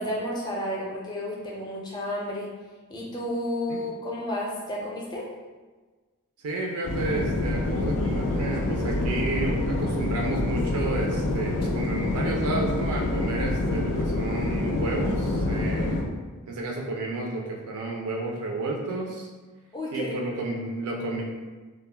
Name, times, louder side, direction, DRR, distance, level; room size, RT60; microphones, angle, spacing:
voice 1, 0.0-2.5 2.9-5.3 19.7-20.1, left 1 dB, 20° left, -4 dB, 0.4 m, -31 dB
voice 2, 6.4-16.0 16.5-19.3 19.9-21.2, right 2 dB, 85° right, -1 dB, 0.4 m, -31 dB
sound 1, 6.8-16.0, left 2 dB, 90° left, 0.4 m, -26 dB
2.2 x 2.0 x 3.2 m, 1.3 s
head